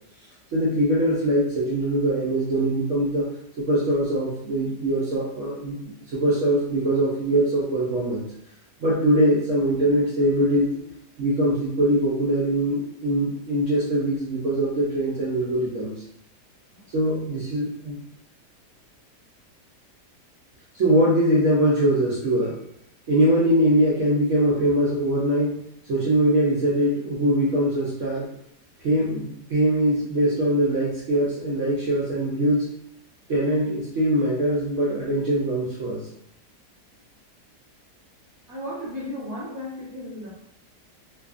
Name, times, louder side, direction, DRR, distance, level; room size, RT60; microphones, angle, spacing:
voice 1, 0.5-3.3 3.6-8.3 8.8-10.7 11.2-15.9 16.9-18.0 20.7-22.6 23.1-25.6 25.9-28.3 28.8-32.7 33.3-36.1, right 1 dB, 65° right, -6 dB, 0.8 m, -22 dB
voice 2, 38.5-40.3, left 1 dB, 20° right, -7 dB, 0.5 m, -34 dB
2.7 x 2.4 x 2.3 m, 0.74 s
omnidirectional pair, 1.8 m